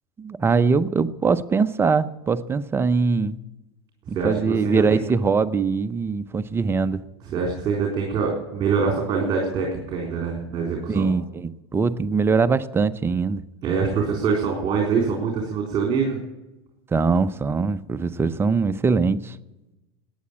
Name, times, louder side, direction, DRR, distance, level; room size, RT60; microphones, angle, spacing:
voice 1, 0.2-3.4 4.1-7.0 10.9-13.4 16.9-19.4, right 4 dB, 15° right, 12 dB, 0.6 m, -22 dB
voice 2, 4.1-5.0 7.2-11.1 13.6-16.2, right 5 dB, 35° right, 0 dB, 3.9 m, -24 dB
15.5 x 9.7 x 8.6 m, 1.0 s
supercardioid pair, 115°, 13 cm